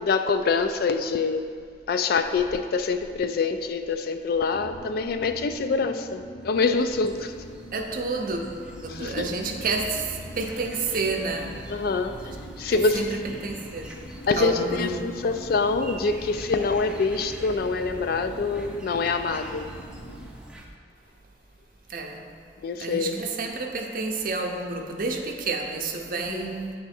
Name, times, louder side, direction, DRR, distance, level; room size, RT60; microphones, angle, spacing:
voice 1, 0.0-1.5 1.9-7.3 8.9-9.3 11.7-12.2 12.6-13.0 14.3-19.7 22.6-23.1 26.1-26.4, left 4 dB, 50° left, 8 dB, 0.3 m, -25 dB
sound 1, 4.5-20.3, equal, 80° left, 0.7 m, -44 dB
sound 2, 6.4-20.7, right 1 dB, 5° right, 0.5 m, -44 dB
voice 2, 7.7-8.4 8.8-11.6 12.2-12.4 12.7-14.0 14.4-15.2 21.9-22.3 22.8-26.7, right 3 dB, 45° right, 2 dB, 0.6 m, -30 dB
8.8 x 3.6 x 4.2 m, 2.2 s
head